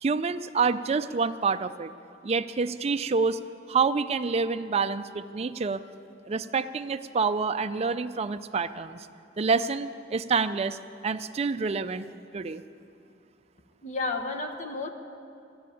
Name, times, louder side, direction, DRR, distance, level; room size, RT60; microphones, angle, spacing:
voice 1, 0.0-1.9 2.2-3.4 3.7-5.8 6.3-9.0 9.4-10.8 11.0-12.0 12.3-12.6, right 4 dB, 35° right, 10 dB, 0.4 m, -27 dB
voice 2, 13.8-14.9, left 3 dB, 40° left, 4 dB, 1.1 m, -31 dB
13.0 x 10.0 x 9.1 m, 2.6 s
head